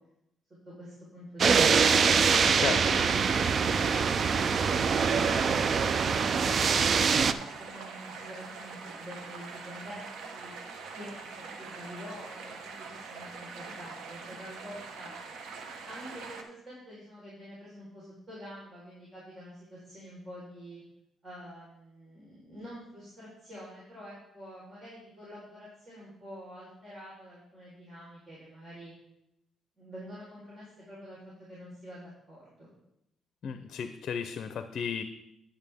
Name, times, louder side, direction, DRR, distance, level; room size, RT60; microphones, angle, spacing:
voice 1, 0.7-2.0 5.5-10.5 10.9-15.1 15.8-20.8 21.2-28.9 29.8-32.7, equal, 30° right, -7 dB, 4.1 m, -47 dB
sound 1, 1.4-7.3, right 6 dB, 50° right, 0.4 m, -24 dB
sound 2, 2.3-16.4, right 4 dB, 80° right, 1.1 m, -43 dB
voice 2, 2.6-3.0 33.4-35.0, left 7 dB, 60° left, 9 dB, 0.5 m, -34 dB
9.3 x 8.9 x 3.5 m, 0.83 s
cardioid pair, 90°, 0 cm